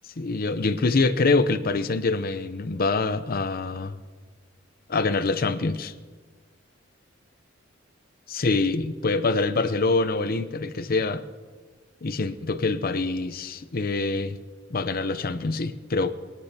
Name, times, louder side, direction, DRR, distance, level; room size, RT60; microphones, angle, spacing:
voice 1, 0.2-4.0 4.9-5.9 8.3-11.2 12.0-14.4 14.7-16.1, left 3 dB, 50° left, 10 dB, 0.7 m, -25 dB
23.0 x 9.9 x 2.9 m, 1.4 s
head